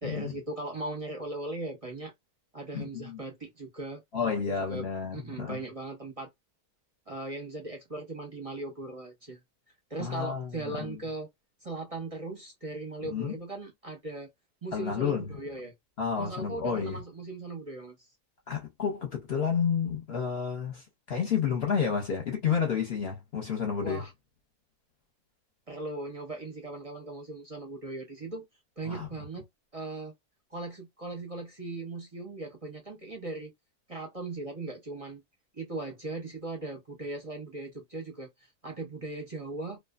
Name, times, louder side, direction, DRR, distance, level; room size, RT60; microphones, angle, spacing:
voice 1, 0.0-2.1 2.5-4.0 4.5-4.9 5.1-6.3 7.1-9.4 9.9-11.3 11.6-14.3 14.6-15.7 16.2-17.9 23.8-24.1 25.7-28.4 28.8-29.5 29.7-30.1 30.5-33.5 33.9-35.2 35.5-39.8, right 2 dB, 35° right, 0.6 m, -38 dB
voice 2, 2.7-3.2 4.1-5.6 10.0-11.0 13.0-13.4 14.7-15.3 16.0-17.0 18.5-24.0 28.9-29.1, left 6 dB, 50° left, 0.9 m, -30 dB
2.6 x 2.2 x 2.3 m
omnidirectional pair, 1.6 m